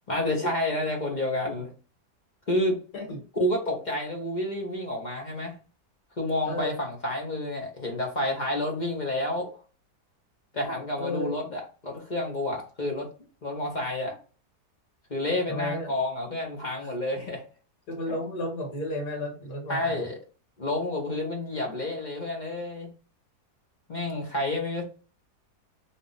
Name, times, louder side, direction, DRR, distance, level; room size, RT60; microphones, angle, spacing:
voice 1, 0.1-1.7 2.5-2.8 3.4-5.6 6.2-9.5 10.5-13.1 13.4-14.2 15.1-17.4 19.7-20.1 20.6-22.9 23.9-24.8, left 1 dB, 35° left, 0.8 m, -29 dB
voice 2, 11.0-11.3 15.5-15.9 16.8-16.9 17.9-20.1, left 1 dB, 75° left, 2.2 m, -33 dB
3.8 x 2.4 x 3.9 m
omnidirectional pair, 1.7 m